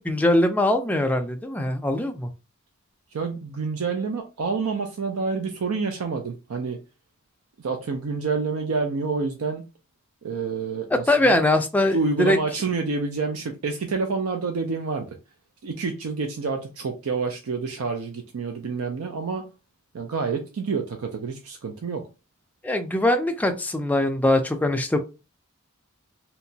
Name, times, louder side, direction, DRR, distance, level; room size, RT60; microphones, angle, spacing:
voice 1, 0.0-2.3 11.1-12.4 22.6-25.0, left 1 dB, 5° left, 0.3 m, -22 dB
voice 2, 3.1-6.8 7.6-9.6 10.2-11.4 11.9-15.2 15.6-19.5 19.9-22.0, right 4 dB, 85° right, 0.4 m, -28 dB
2.9 x 2.2 x 2.7 m
head